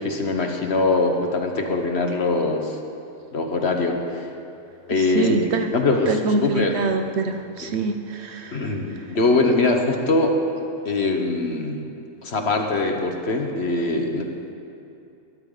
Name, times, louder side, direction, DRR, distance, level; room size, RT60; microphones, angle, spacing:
voice 1, 0.0-2.8 3.3-4.3 4.9-6.8 8.5-10.4 10.8-11.9 12.2-14.6, left 3 dB, 55° left, 3 dB, 1.5 m, -22 dB
voice 2, 4.9-5.7 6.1-8.7, right 4 dB, 60° right, 6 dB, 0.9 m, -25 dB
21.0 x 12.5 x 4.0 m, 2.7 s
omnidirectional pair, 1.4 m